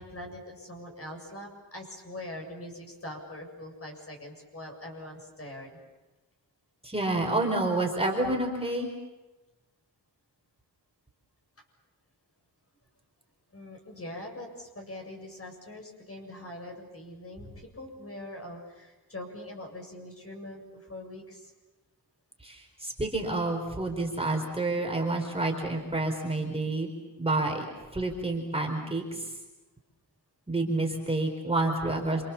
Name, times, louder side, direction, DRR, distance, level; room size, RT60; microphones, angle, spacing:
voice 1, 0.0-5.7 13.5-21.5, left 1 dB, 35° left, 2 dB, 7.5 m, -43 dB
voice 2, 6.8-8.9 22.4-26.9 27.2-27.7 27.9-29.3 30.5-32.2, right 2 dB, 15° right, 1 dB, 4.4 m, -29 dB
29.5 x 26.0 x 7.2 m, 1.1 s
wide cardioid pair, 120°, 39 cm